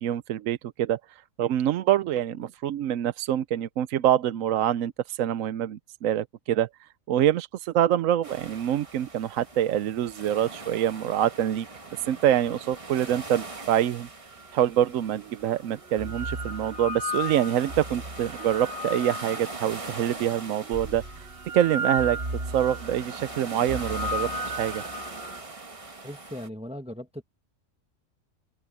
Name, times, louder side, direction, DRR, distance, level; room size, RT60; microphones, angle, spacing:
voice 1, 0.0-6.7 7.1-11.7 11.9-14.1 14.5-21.3 21.5-22.2 22.5-24.3 24.6-24.8, right 11 dB, 75° right, 1.0 m, -25 dB
sound 1, 8.2-26.5, right 3 dB, 25° right, 1.4 m, -42 dB
sound 2, 14.6-14.7 15.7-20.0 20.7-25.4, equal, 50° right, 3.5 m, -34 dB
voice 2, 26.0-27.2, equal, 5° right, 1.3 m, -38 dB
open air
omnidirectional pair, 1.4 m